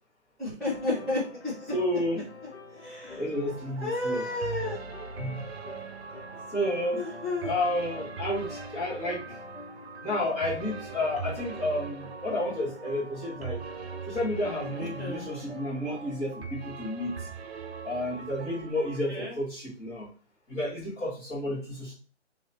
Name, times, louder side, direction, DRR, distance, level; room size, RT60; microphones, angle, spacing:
voice 1, 0.4-1.5 2.8-3.2 3.8-4.8 7.0-7.5 14.8-15.2 19.1-19.3, left 2 dB, ahead, -16 dB, 1.3 m, -31 dB
sound 1, 0.6-16.4, left 2 dB, 65° left, 1.4 m, -46 dB
voice 2, 1.7-2.2 3.2-4.3 5.2-5.4 6.5-7.0 7.4-9.4 10.0-13.6 14.1-17.3 17.8-20.1 20.5-21.9, left 1 dB, 15° left, -8 dB, 1.5 m, -31 dB
sound 2, 3.5-19.0, right 6 dB, 65° right, 0.6 m, -41 dB
3.0 x 2.9 x 4.4 m, 0.38 s
hypercardioid pair, 150°, 35 cm